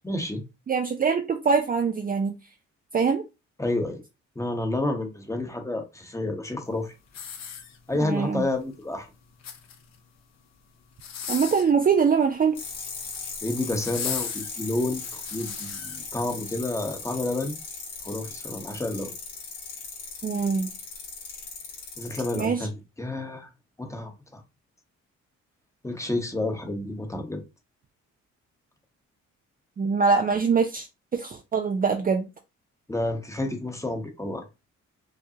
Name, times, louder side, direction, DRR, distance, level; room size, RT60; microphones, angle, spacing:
voice 1, 0.0-0.4 3.6-4.0 4.3-6.9 7.9-9.1 13.4-17.5 18.0-19.1 22.0-23.5 23.8-24.4 25.8-27.4 32.9-34.4, left 2 dB, 10° left, 1.1 m, -30 dB
voice 2, 0.7-2.3 2.9-3.2 8.0-8.4 11.3-12.6 20.2-20.7 22.4-22.6 29.8-30.9 31.1-32.3, right 5 dB, 30° right, 0.5 m, -23 dB
sound 1, 7.1-8.1 9.2-10.0 10.9-11.8 12.9-13.3 13.8-16.0 16.6-16.7, left 7 dB, 60° left, 0.9 m, -36 dB
sound 2, 12.5-22.4, left 4 dB, 85° left, 2.2 m, -38 dB
4.9 x 2.3 x 2.8 m
cardioid pair, 90°, 30 cm